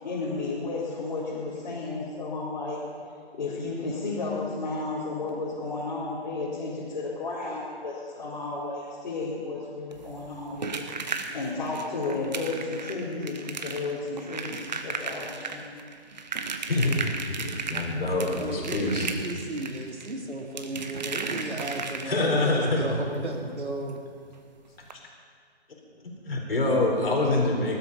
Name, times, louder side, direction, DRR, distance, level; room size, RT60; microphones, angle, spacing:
voice 1, 0.0-2.8 3.3-15.7 17.4-17.6 17.9-18.2, left 3 dB, 40° left, -8 dB, 4.2 m, -33 dB
sound 1, 9.9-22.4 23.9-24.0 24.3-24.4 24.8-24.9, right 4 dB, 40° right, 1.2 m, -36 dB
voice 2, 17.3-19.1 22.1-22.9 23.1-23.2 24.9-25.0 26.0-27.8, left 2 dB, 60° left, 0 dB, 4.4 m, -26 dB
voice 3, 18.4-24.0, right 1 dB, 80° right, 0 dB, 3.3 m, -34 dB
19.5 x 13.0 x 5.5 m, 2.1 s
figure-of-eight pair, 150°, 33 cm